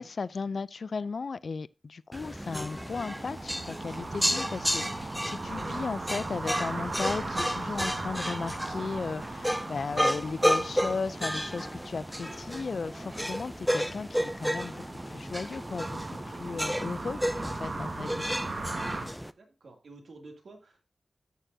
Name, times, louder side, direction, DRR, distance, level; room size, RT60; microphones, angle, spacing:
voice 1, 0.0-16.0 16.3-18.2, left 4 dB, 60° left, 0.4 m, -36 dB
sound 1, 2.1-19.3, equal, ahead, 0.4 m, -32 dB
sound 2, 2.3-19.1, right 3 dB, 55° right, 1.6 m, -39 dB
voice 2, 19.4-20.9, right 2 dB, 75° right, 2.6 m, -50 dB
13.5 x 6.8 x 2.7 m
wide cardioid pair, 125°, 0 cm